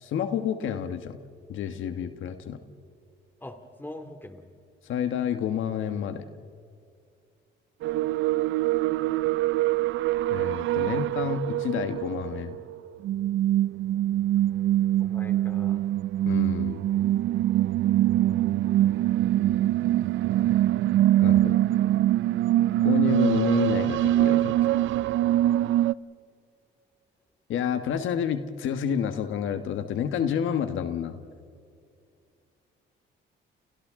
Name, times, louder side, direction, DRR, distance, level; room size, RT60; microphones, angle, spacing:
voice 1, 0.0-1.2 1.5-2.6 4.8-6.3 10.3-12.6 16.3-16.8 21.2-21.6 22.8-24.6 27.5-31.2, left 8 dB, 80° left, 9 dB, 1.4 m, -29 dB
voice 2, 3.4-4.5 15.0-15.8, left 1 dB, 10° left, 6 dB, 2.3 m, -42 dB
sound 1, 7.8-25.9, right 13 dB, 75° right, 0.5 m, -24 dB
29.5 x 29.5 x 3.8 m, 2.3 s
cardioid pair, 90°, 20 cm